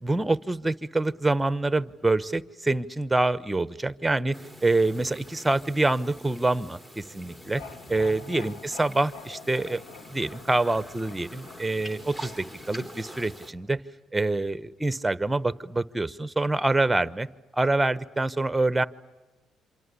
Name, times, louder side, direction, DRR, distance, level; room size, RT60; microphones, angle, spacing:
voice 1, 0.0-4.4 4.6-7.6 7.9-9.8 10.1-13.8 14.1-17.3 17.5-18.9, right 2 dB, 15° right, 15 dB, 1.1 m, -26 dB
sound 1, 4.3-13.5, equal, 15° left, 3.3 m, -45 dB
sound 2, 7.3-13.4, left 6 dB, 90° left, 1.7 m, -47 dB
27.5 x 25.5 x 8.4 m, 1.1 s
supercardioid pair, 75°, 0 cm